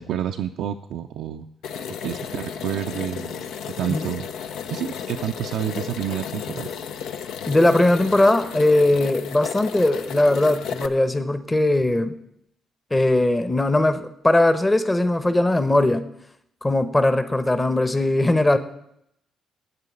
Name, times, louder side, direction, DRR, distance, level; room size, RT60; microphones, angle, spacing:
voice 1, 0.0-1.5 2.0-3.4 3.8-4.3 4.7-6.7, right 10 dB, 75° right, 5 dB, 0.4 m, -29 dB
sound 1, 1.6-10.9, left 7 dB, 75° left, 0.6 m, -33 dB
voice 2, 7.5-12.1 12.9-16.0 16.6-18.6, left 1 dB, 20° left, 10 dB, 1.0 m, -19 dB
8.6 x 6.8 x 8.6 m, 0.75 s
hypercardioid pair, 50°, 0 cm